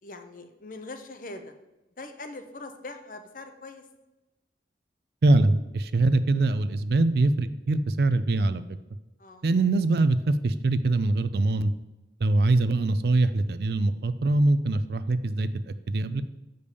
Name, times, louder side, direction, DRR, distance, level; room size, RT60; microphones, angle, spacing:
voice 1, 0.0-1.5 2.0-3.8 9.2-9.5, left 2 dB, 50° left, 7 dB, 0.7 m, -42 dB
voice 2, 5.2-8.6 9.4-11.7 12.2-16.2, right 2 dB, 60° right, 13 dB, 0.4 m, -23 dB
6.9 x 5.2 x 6.7 m, 1.0 s
head